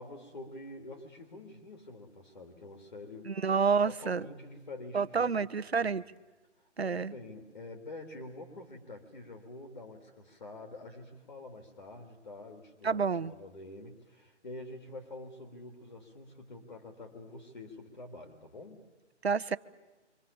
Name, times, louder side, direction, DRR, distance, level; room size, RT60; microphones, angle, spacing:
voice 1, 0.0-3.4 3.8-5.5 5.8-5.9 6.6-18.8, left 2 dB, 45° left, 4 dB, 3.8 m, -47 dB
voice 2, 3.3-4.2 4.9-6.0 6.8-7.1 12.8-13.3 19.2-19.6, right 5 dB, 60° right, 14 dB, 1.2 m, -29 dB
30.0 x 25.5 x 7.2 m, 1.2 s
hypercardioid pair, 180°, 35 cm